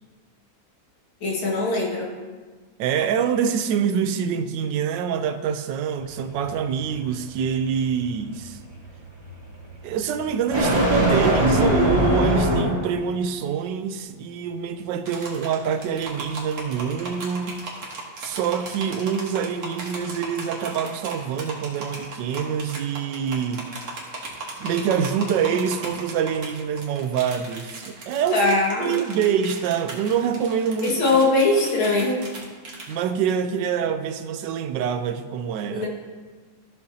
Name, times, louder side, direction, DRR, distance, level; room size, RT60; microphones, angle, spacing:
voice 1, 1.2-2.1 28.3-29.0 30.8-32.2 35.7-35.9, left 2 dB, 80° left, -4 dB, 2.7 m, -21 dB
voice 2, 2.8-8.6 9.8-17.6 18.2-23.7 24.6-31.2 32.9-35.9, right 7 dB, 70° right, 9 dB, 1.2 m, -25 dB
sound 1, 6.0-13.0, equal, 15° right, 1.7 m, -24 dB
sound 2, 15.1-32.9, right 3 dB, 50° right, 2.0 m, -37 dB
14.5 x 6.6 x 2.8 m, 1.5 s
omnidirectional pair, 2.2 m